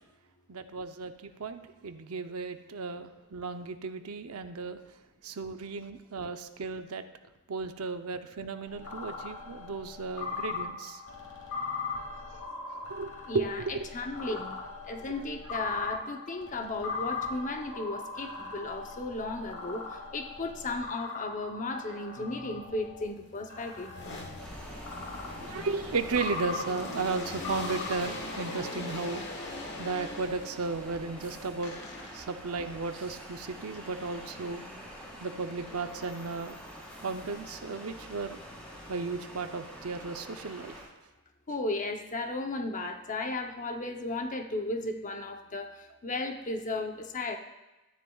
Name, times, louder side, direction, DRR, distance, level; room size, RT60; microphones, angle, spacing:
voice 1, 0.5-4.8 5.2-7.0 7.5-11.0 12.9-13.9 25.4-29.2 29.8-31.7 32.1-34.6 35.2-36.6 37.0-38.4 38.9-40.8, right 4 dB, 80° right, 8 dB, 0.7 m, -35 dB
sound 1, 8.7-23.1 23.5-28.6, left 4 dB, 75° left, 2.2 m, -40 dB
voice 2, 13.3-13.6 13.9-14.6 14.9-23.9 41.5-47.4, left 2 dB, 35° left, 4 dB, 0.8 m, -35 dB
sound 2, 23.1-30.7 31.6-32.4 35.6-36.4 36.9-39.3, left 2 dB, 50° left, 1.5 m, -43 dB
sound 3, 24.4-40.8, equal, 5° left, 2.9 m, -46 dB
13.0 x 10.5 x 2.4 m, 1.0 s
head